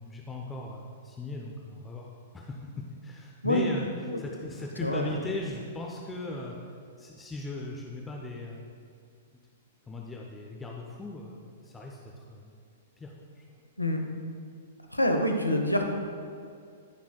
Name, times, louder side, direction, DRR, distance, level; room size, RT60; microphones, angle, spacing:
voice 1, 0.0-2.1 2.3-3.9 4.2-6.6 7.0-8.7 9.9-12.5 13.0-13.4, left 2 dB, 10° left, -1 dB, 0.7 m, -38 dB
voice 2, 4.8-5.1 13.8-14.0 14.9-15.9, left 1 dB, 85° left, 4 dB, 0.8 m, -26 dB
13.5 x 5.8 x 2.3 m, 2.3 s
figure-of-eight pair, 105°, 0 cm